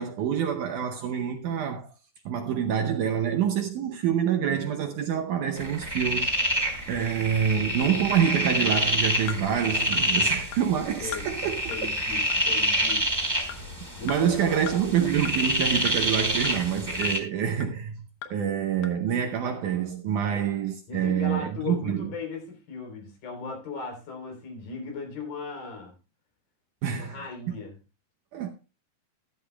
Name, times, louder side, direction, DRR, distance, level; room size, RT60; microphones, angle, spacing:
voice 1, 0.0-1.9 2.3-6.6 6.9-11.9 14.0-18.0 18.3-22.1 26.8-27.2 28.3-28.5, right 8 dB, 80° right, 1.8 m, -27 dB
sound 1, 5.6-17.2, equal, 5° right, 3.1 m, -27 dB
sound 2, 8.7-8.8 9.3-9.4 9.9-10.0 10.5-10.6 11.1-11.3 11.7-11.8 12.3-12.4 12.9-13.0 13.5-13.6 14.1-14.2 14.7-14.8 15.3-15.4 15.9-16.0 16.4-16.5 17.0-17.1 17.6-17.7 18.2-18.3 18.8-18.9, left 11 dB, 80° left, 1.6 m, -37 dB
voice 2, 11.7-13.1 14.0-14.9 20.2-20.4 20.9-25.9 26.9-27.7, left 5 dB, 60° left, 5.3 m, -37 dB
13.5 x 13.0 x 2.3 m
omnidirectional pair, 4.7 m